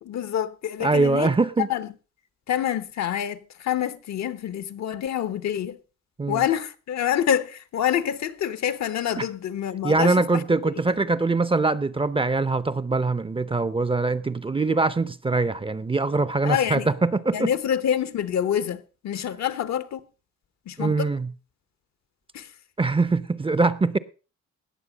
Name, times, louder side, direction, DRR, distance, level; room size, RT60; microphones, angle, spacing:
voice 1, 0.0-1.3 1.6-1.9 2.5-5.8 6.3-10.4 16.4-16.9 17.3-20.0 20.7-21.1 22.3-22.5, left 10 dB, 65° left, 1.1 m, -27 dB
voice 2, 0.8-1.7 6.2-6.4 9.2-9.3 9.8-17.5 20.8-21.3 22.8-24.0, right 3 dB, 15° right, 0.7 m, -23 dB
18.5 x 6.8 x 5.1 m
cardioid pair, 90°, 30 cm